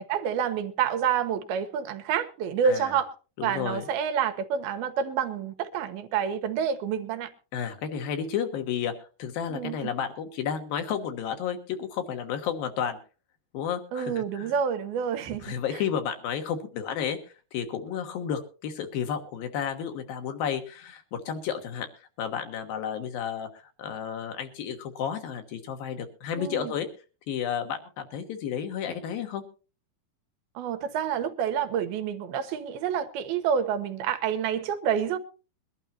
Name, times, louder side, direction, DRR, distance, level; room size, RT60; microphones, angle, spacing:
voice 1, 0.0-3.1 3.4-7.3 9.5-9.9 13.9-15.8 26.4-26.7 30.6-35.2, right 7 dB, 80° right, 3.0 m, -28 dB
voice 2, 2.6-3.0 3.4-3.8 7.5-13.0 13.5-14.5 15.4-17.2 17.5-21.9 22.2-26.9 27.3-29.4, left 8 dB, 70° left, 3.1 m, -32 dB
22.5 x 12.0 x 2.8 m
omnidirectional pair, 4.4 m